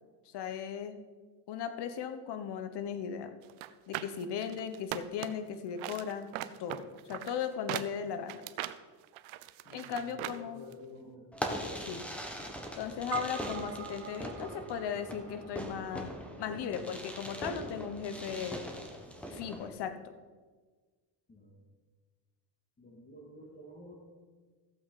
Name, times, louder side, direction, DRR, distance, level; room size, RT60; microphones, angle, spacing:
voice 1, 0.2-1.0 1.5-3.3 3.9-8.4 9.7-10.6 11.7-12.1 12.8-18.6 19.3-20.1, left 8 dB, 55° left, 9 dB, 1.1 m, -37 dB
sound 1, 3.5-5.5 5.8-10.4 10.7-10.8, right 14 dB, 75° right, 0.7 m, -40 dB
voice 2, 9.6-11.3 21.3-21.6 22.8-23.9, left 1 dB, 20° left, -4 dB, 2.4 m, -50 dB
Fireworks, 11.3-19.7, equal, 5° left, 1.4 m, -41 dB
sound 2, 13.1-17.7, right 8 dB, 30° right, 0.4 m, -45 dB
15.0 x 7.7 x 4.1 m, 1.4 s
cardioid pair, 115°, 49 cm